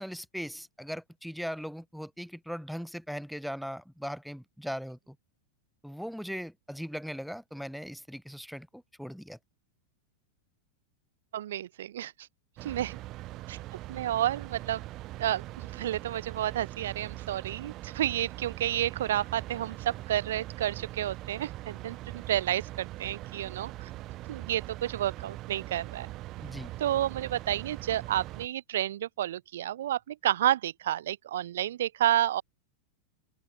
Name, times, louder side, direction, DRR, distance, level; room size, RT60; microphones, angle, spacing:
voice 1, 0.0-5.1 5.8-9.4 26.4-26.7, equal, ahead, 1.7 m, -39 dB
voice 2, 11.3-12.3 12.6-13.0 13.5-13.6 13.9-14.8 15.2-23.9 24.3-26.1 26.8-32.4, right 12 dB, 60° right, 1.7 m, -30 dB
sound 1, 12.6-28.5, right 17 dB, 35° right, 1.0 m, -42 dB
open air
figure-of-eight pair, 90°, 0 cm